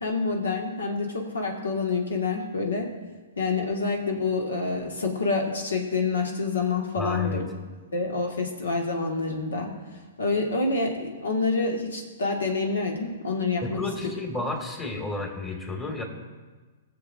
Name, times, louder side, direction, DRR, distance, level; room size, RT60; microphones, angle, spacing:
voice 1, 0.0-2.9 3.4-7.4 7.9-9.7 10.2-13.8, left 3 dB, 85° left, 2 dB, 1.6 m, -27 dB
voice 2, 7.0-7.4 13.6-16.0, left 2 dB, 20° left, 2 dB, 2.1 m, -31 dB
20.0 x 7.0 x 2.6 m, 1.4 s
hypercardioid pair, 125°, 0 cm